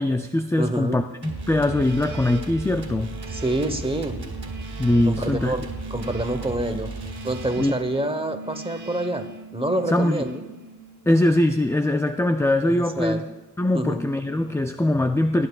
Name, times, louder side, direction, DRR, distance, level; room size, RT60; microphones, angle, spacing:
voice 1, 0.0-3.1 4.8-5.6 7.6-7.7 9.9-10.2 11.1-13.3 13.6-15.5, left 1 dB, 10° left, 7 dB, 0.3 m, -22 dB
voice 2, 0.6-1.0 3.3-4.2 5.1-6.9 7.2-9.3 9.5-10.4 12.7-13.2 13.7-14.0, right 1 dB, 15° right, 8 dB, 0.9 m, -27 dB
sound 1, 1.2-11.2, right 3 dB, 50° right, 0.9 m, -40 dB
sound 2, 1.2-8.0, right 3 dB, 75° right, 1.9 m, -36 dB
19.0 x 11.0 x 2.3 m, 1.1 s
wide cardioid pair, 100°, 38 cm